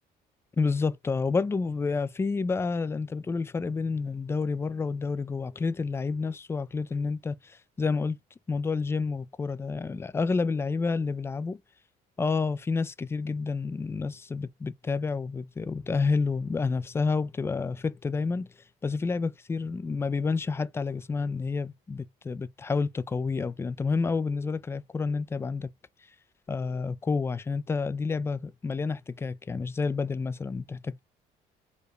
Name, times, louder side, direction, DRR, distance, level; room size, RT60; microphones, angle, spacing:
voice 1, 0.6-8.2 8.5-11.6 12.2-18.5 18.8-25.7 26.5-31.0, left 4 dB, 15° left, 0.3 m, -29 dB
4.6 x 2.2 x 4.7 m
cardioid pair, 110°, 17 cm